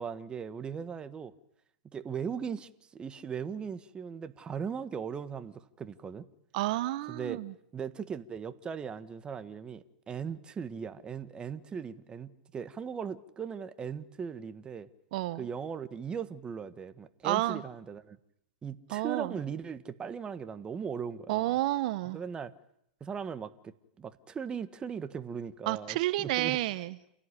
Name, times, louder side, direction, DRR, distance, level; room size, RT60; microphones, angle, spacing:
voice 1, 0.0-1.3 1.9-6.3 7.1-7.4 7.7-14.9 15.4-18.2 18.6-21.5 22.1-22.5 23.0-26.6, right 7 dB, 20° right, 1.6 m, -38 dB
voice 2, 6.5-7.5 15.1-15.5 17.2-17.6 18.9-19.3 21.3-22.2 25.7-27.0, right 16 dB, 55° right, 1.2 m, -30 dB
29.0 x 17.0 x 10.0 m
hypercardioid pair, 130°, 5 cm